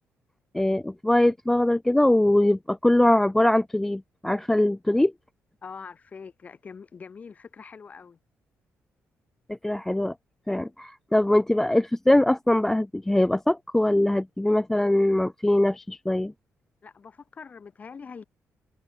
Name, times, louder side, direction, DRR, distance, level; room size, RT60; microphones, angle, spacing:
voice 1, 0.5-5.1 9.5-10.1 10.5-16.3, left 1 dB, 5° left, 0.3 m, -22 dB
voice 2, 5.6-8.2 16.8-18.2, left 5 dB, 30° left, 6.2 m, -43 dB
cardioid pair, 175°, 5 cm